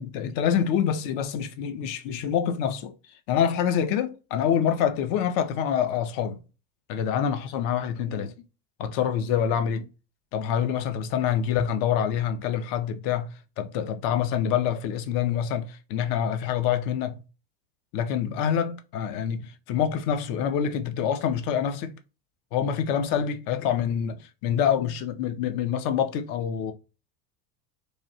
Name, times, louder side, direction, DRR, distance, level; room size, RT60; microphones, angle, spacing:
voice 1, 0.0-2.9 3.3-6.4 6.9-8.3 8.8-9.9 10.3-13.3 13.6-17.2 17.9-22.0 22.5-26.7, left 8 dB, 45° left, 0.6 m, -26 dB
3.2 x 2.3 x 2.6 m
hypercardioid pair, 90°, 49 cm